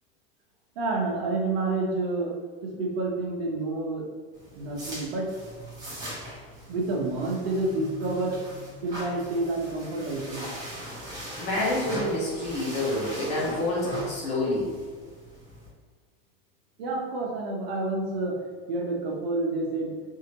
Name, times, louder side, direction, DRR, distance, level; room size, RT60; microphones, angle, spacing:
voice 1, 0.8-2.3 2.6-4.1 4.6-5.3 6.7-8.4 8.8-10.5 16.8-18.4 18.7-20.0, right 2 dB, 75° right, -2 dB, 1.1 m, -29 dB
sound 1, 4.3-15.7, equal, 15° right, 1.0 m, -40 dB
voice 2, 11.4-14.7, left 1 dB, 20° left, -5 dB, 0.8 m, -28 dB
4.8 x 2.8 x 2.9 m, 1.5 s
supercardioid pair, 175°, 30 cm